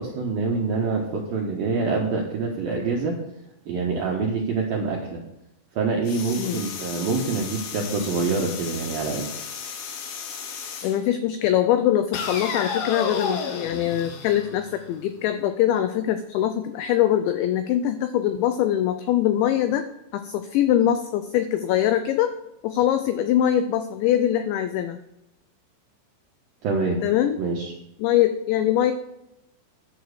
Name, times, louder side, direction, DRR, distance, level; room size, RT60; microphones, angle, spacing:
voice 1, 0.0-3.2 3.7-5.2 5.8-9.3 26.6-27.0 27.4-27.7, right 4 dB, 75° right, -2 dB, 2.1 m, -26 dB
sound 1, 6.1-11.0 12.1-15.1, left 5 dB, 70° left, 2.4 m, -33 dB
voice 2, 10.8-19.9 20.1-22.3 22.6-25.0 27.0-27.4 28.0-28.9, left 11 dB, 85° left, 9 dB, 2.6 m, -23 dB
11.0 x 7.1 x 6.4 m, 0.87 s
omnidirectional pair, 5.9 m